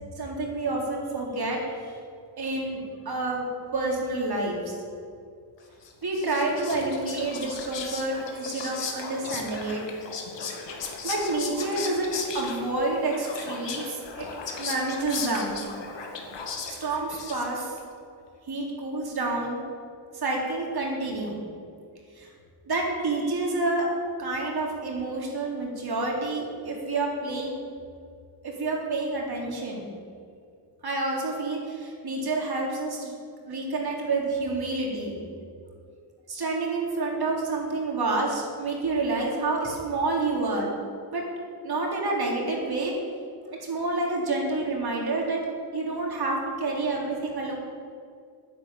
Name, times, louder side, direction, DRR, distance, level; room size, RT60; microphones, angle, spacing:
voice 1, 0.2-1.7 2.4-2.8 3.1-4.7 6.0-9.8 11.0-14.3 14.6-15.5 16.7-17.8 18.5-19.6 20.1-21.4 22.2-22.3 22.6-27.6 28.4-29.9 30.8-33.1 33.5-35.2 36.3-40.7 41.1-41.2 41.6-42.9 43.6-45.4 45.7-47.6, right 2 dB, 55° right, -1 dB, 3.9 m, -28 dB
Whispering, 5.8-17.8, left 5 dB, 65° left, 2.1 m, -37 dB
9.9 x 9.7 x 8.8 m, 2.3 s
cardioid pair, 70°, 46 cm